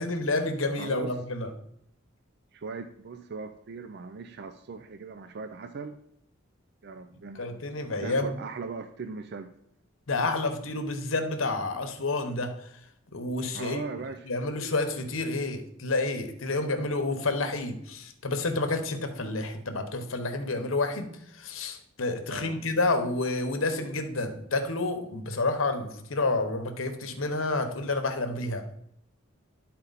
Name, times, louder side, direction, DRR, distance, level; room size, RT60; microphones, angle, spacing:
voice 1, 0.0-1.5 7.4-8.3 10.1-12.7 13.1-13.8 14.3-28.6, left 2 dB, 70° left, 7 dB, 1.0 m, -29 dB
voice 2, 0.8-1.2 2.5-6.0 6.8-7.5 8.0-9.5 13.5-14.3 22.3-22.6, right 4 dB, 50° right, 9 dB, 0.4 m, -39 dB
11.5 x 4.3 x 4.0 m, 0.73 s
head